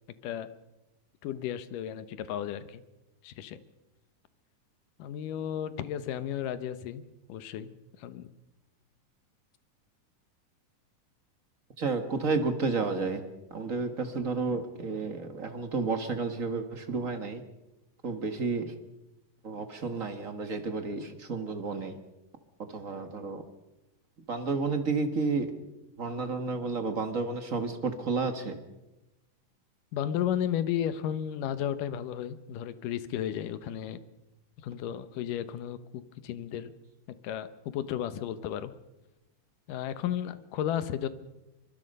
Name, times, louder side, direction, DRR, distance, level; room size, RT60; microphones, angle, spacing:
voice 1, 1.2-2.8 3.2-3.6 5.0-7.0 7.3-7.7 8.0-8.3 29.9-34.0 34.6-36.7 37.1-38.7 39.7-41.1, left 10 dB, 75° left, 13 dB, 2.6 m, -33 dB
voice 2, 11.8-13.2 13.5-17.4 18.0-18.7 19.4-22.0 22.7-23.4 24.3-25.5 26.0-28.6, right 4 dB, 45° right, 8 dB, 1.0 m, -31 dB
24.5 x 23.0 x 5.5 m, 0.99 s
omnidirectional pair, 3.9 m